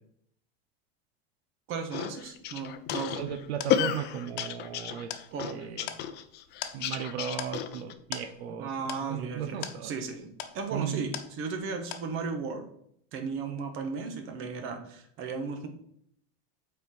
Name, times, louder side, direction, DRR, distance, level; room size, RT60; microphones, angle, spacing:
voice 1, 1.7-3.3 5.3-5.6 8.5-12.6 13.1-15.7, right 5 dB, 40° right, 6 dB, 1.3 m, -36 dB
sound 1, 1.9-7.9, left 10 dB, 35° left, 0.6 m, -32 dB
sound 2, 2.2-11.7 11.9-12.5, left 10 dB, 60° left, 1.0 m, -43 dB
voice 2, 3.1-5.1 5.4-5.9 6.7-8.7 9.0-9.9 10.7-11.1, right 8 dB, 85° right, 9 dB, 0.8 m, -36 dB
8.1 x 4.5 x 4.4 m, 0.70 s
supercardioid pair, 135°, 31 cm